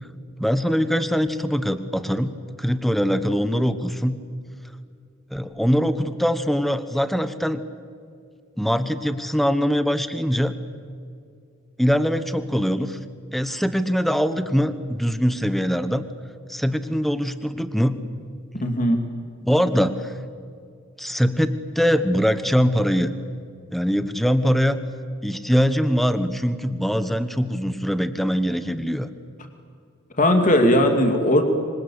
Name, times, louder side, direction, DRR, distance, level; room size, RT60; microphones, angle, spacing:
voice 1, 0.4-4.2 5.3-7.6 8.6-10.5 11.8-13.0 13.3-16.1 16.5-18.0 19.4-20.1 21.0-23.2 23.7-24.8 25.2-29.1, equal, ahead, 11 dB, 1.2 m, -22 dB
voice 2, 18.5-19.0 30.2-31.4, left 1 dB, 40° left, 5 dB, 2.5 m, -18 dB
26.0 x 25.5 x 8.7 m, 2.2 s
head